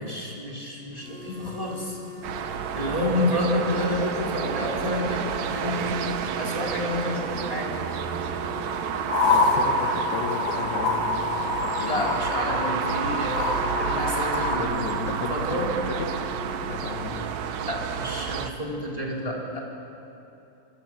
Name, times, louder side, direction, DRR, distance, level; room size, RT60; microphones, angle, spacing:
voice 1, 0.0-2.0 2.7-6.0 6.4-7.7 11.9-14.7 15.0-15.7 17.7-19.6, left 1 dB, 10° left, -3 dB, 4.0 m, -29 dB
sound 1, 0.9-17.7, left 4 dB, 55° right, 6.7 m, -43 dB
sound 2, 2.2-18.5, right 8 dB, 85° right, 1.6 m, -30 dB
sound 3, 9.1-14.6, left 3 dB, 50° left, 3.3 m, -26 dB
voice 2, 9.3-12.2 14.5-16.3 16.7-17.3, left 6 dB, 75° left, 6 dB, 3.4 m, -35 dB
26.5 x 25.0 x 7.8 m, 2.8 s
omnidirectional pair, 4.8 m